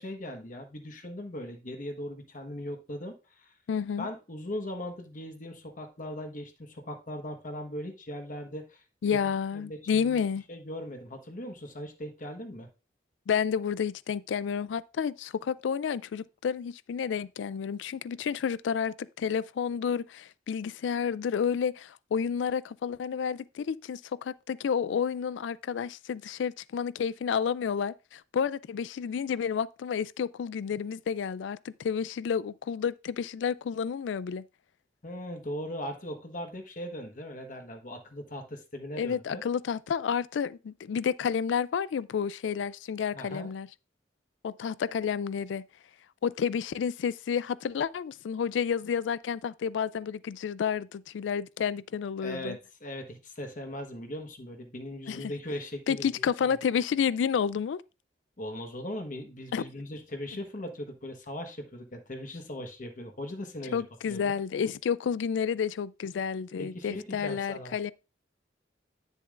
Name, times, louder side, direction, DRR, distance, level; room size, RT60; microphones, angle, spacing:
voice 1, 0.0-3.5 4.0-8.8 9.1-9.2 9.5-10.2 10.5-12.7 35.0-39.4 43.1-43.5 52.2-56.5 58.4-64.3 66.6-67.7, left 1 dB, 45° left, 1.2 m, -39 dB
voice 2, 3.7-4.1 9.0-10.4 13.3-34.5 39.0-43.7 44.4-45.7 46.2-52.6 55.1-55.3 55.9-57.8 59.5-59.6 63.7-67.9, left 7 dB, 85° left, 0.3 m, -30 dB
10.0 x 6.9 x 2.5 m
head